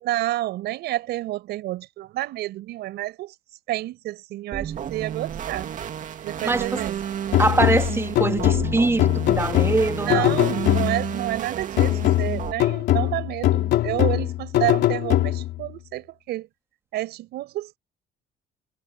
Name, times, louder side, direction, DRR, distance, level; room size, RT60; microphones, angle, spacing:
voice 1, 0.0-3.4 3.7-5.7 6.2-6.9 9.9-16.5 16.9-17.8, right 15 dB, 80° right, 7.0 m, -29 dB
sound 1, 4.5-12.5, right 9 dB, 50° right, 2.2 m, -31 dB
voice 2, 6.4-6.8 7.4-10.3, right 3 dB, 15° right, 2.8 m, -23 dB
sound 2, 7.3-11.2 11.8-15.7, left 14 dB, 80° left, 3.0 m, -22 dB
cardioid pair, 110°, 17 cm